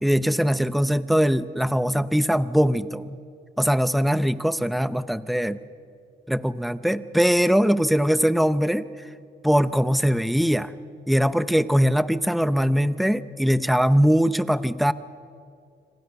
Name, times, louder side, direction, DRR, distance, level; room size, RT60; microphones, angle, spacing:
voice 1, 0.0-3.2 3.6-5.6 6.3-8.9 9.4-10.7 11.1-14.9, equal, ahead, 14 dB, 0.7 m, -21 dB
26.0 x 25.5 x 5.9 m, 2.4 s
cardioid pair, 90°, 20 cm